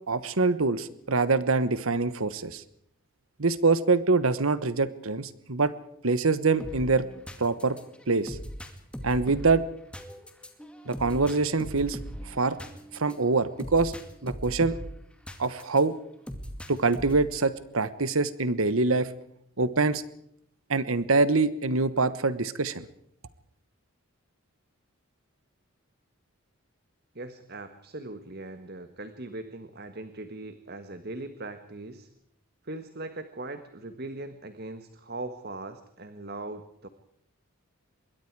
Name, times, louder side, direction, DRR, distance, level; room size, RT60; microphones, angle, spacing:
voice 1, 0.1-2.6 3.4-5.7 6.0-7.0 7.4-7.8 8.1-8.4 9.0-9.6 10.9-12.0 12.2-12.6 12.9-13.9 14.2-14.8 15.4-15.9 16.7-19.1 19.6-20.0 20.7-22.9, right 3 dB, 75° right, 15 dB, 1.2 m, -24 dB
sound 1, 6.6-15.8 16.3-17.4, equal, 5° left, 2.3 m, -40 dB
voice 2, 27.1-32.1 32.6-36.9, right 2 dB, 45° right, 10 dB, 1.6 m, -40 dB
26.0 x 22.0 x 4.8 m, 0.74 s
head